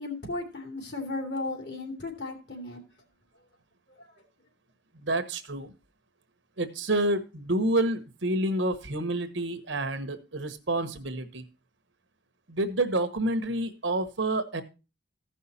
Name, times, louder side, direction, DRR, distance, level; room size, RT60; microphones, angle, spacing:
voice 1, 0.0-2.8 4.0-4.2, left 2 dB, 55° left, 2.7 m, -35 dB
voice 2, 4.9-5.7 6.6-11.4 12.5-14.6, right 1 dB, 70° right, 1.1 m, -28 dB
15.0 x 5.6 x 4.1 m
head